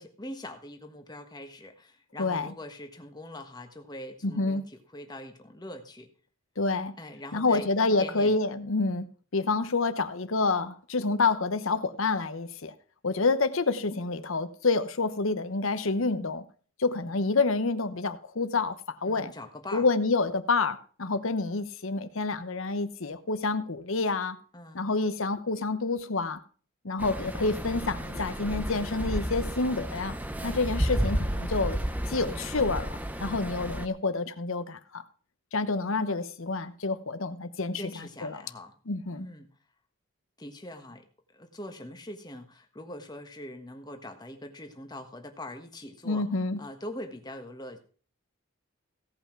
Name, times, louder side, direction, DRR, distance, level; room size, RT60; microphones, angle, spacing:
voice 1, 0.0-6.1 7.0-8.4 8.9-9.0 17.0-17.2 19.1-19.9 21.1-21.2 24.5-24.9 30.4-30.7 37.7-38.7 39.2-39.5 40.4-41.0 41.3-46.3 46.6-47.8, left 1 dB, 20° left, 5 dB, 1.4 m, -43 dB
voice 2, 2.2-2.5 4.2-4.6 6.6-6.9 7.3-12.7 13.0-16.4 16.8-19.3 19.7-24.4 24.7-26.4 26.8-30.2 30.4-31.8 32.1-35.0 35.5-38.4 38.9-39.3 46.0-46.6, left 3 dB, 65° left, 12 dB, 1.0 m, -28 dB
sound 1, 27.0-33.9, equal, 5° right, 0.7 m, -32 dB
16.5 x 5.7 x 6.0 m, 0.42 s
head